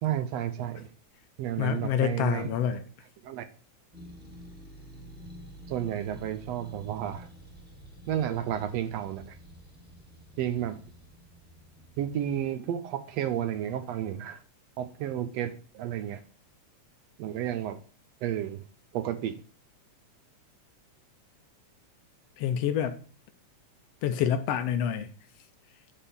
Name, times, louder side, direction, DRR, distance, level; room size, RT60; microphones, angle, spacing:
voice 1, 0.0-0.9 1.4-2.5 3.2-3.4 5.7-7.3 8.1-9.3 10.4-10.8 12.0-14.4 14.8-16.2 17.2-17.8 18.2-18.6 18.9-19.4, right 11 dB, 75° right, 1.6 m, -31 dB
voice 2, 1.6-2.8 22.4-23.0 24.0-25.1, left 9 dB, 70° left, 1.5 m, -27 dB
sound 1, 3.9-12.4, equal, 5° right, 0.9 m, -49 dB
9.9 x 3.7 x 7.0 m
omnidirectional pair, 3.4 m